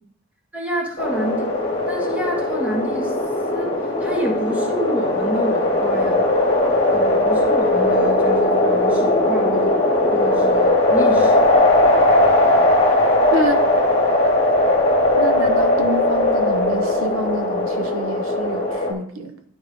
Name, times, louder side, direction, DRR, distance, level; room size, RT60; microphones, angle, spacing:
voice 1, 0.5-1.6 1.9-3.2 3.5-6.3 6.9-9.8 10.1-11.4, right 1 dB, 5° right, -3 dB, 1.6 m, -29 dB
sound 1, 1.0-18.9, left 1 dB, 30° left, 1.6 m, -18 dB
voice 2, 13.3-13.7 15.1-19.3, right 1 dB, 85° right, 8 dB, 0.9 m, -27 dB
12.0 x 4.6 x 3.5 m, 0.68 s
head